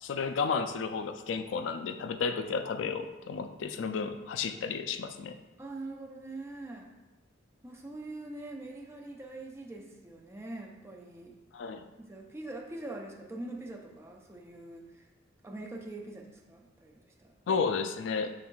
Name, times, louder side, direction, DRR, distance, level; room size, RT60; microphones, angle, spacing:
voice 1, 0.0-5.4 11.5-11.8 17.5-18.3, left 5 dB, 70° left, 8 dB, 0.3 m, -32 dB
voice 2, 5.6-6.9 7.6-11.4 12.0-15.0 15.4-17.3, right 2 dB, 15° right, 0 dB, 0.5 m, -43 dB
6.0 x 3.4 x 2.3 m, 1.0 s
head